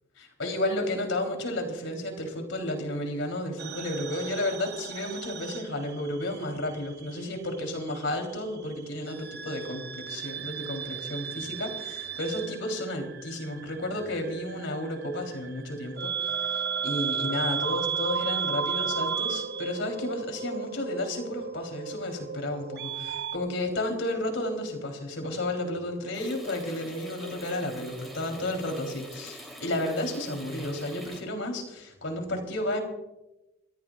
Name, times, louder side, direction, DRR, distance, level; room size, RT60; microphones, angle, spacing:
voice 1, 0.2-32.8, left 1 dB, 80° left, 3 dB, 3.6 m, -32 dB
sound 1, 3.6-6.4 6.7-7.9 9.1-23.4, right 7 dB, 50° right, 0.8 m, -34 dB
sound 2, 26.1-31.2, equal, ahead, 3.3 m, -45 dB
27.0 x 14.5 x 2.5 m, 0.97 s
head